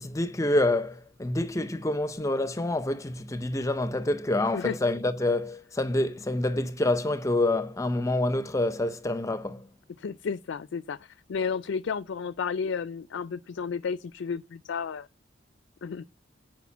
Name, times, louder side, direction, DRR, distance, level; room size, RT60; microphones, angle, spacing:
voice 1, 0.0-9.6, left 2 dB, 15° left, 0.5 m, -27 dB
voice 2, 10.0-15.1 15.8-16.0, left 6 dB, 75° left, 0.4 m, -32 dB
8.3 x 5.0 x 7.0 m
head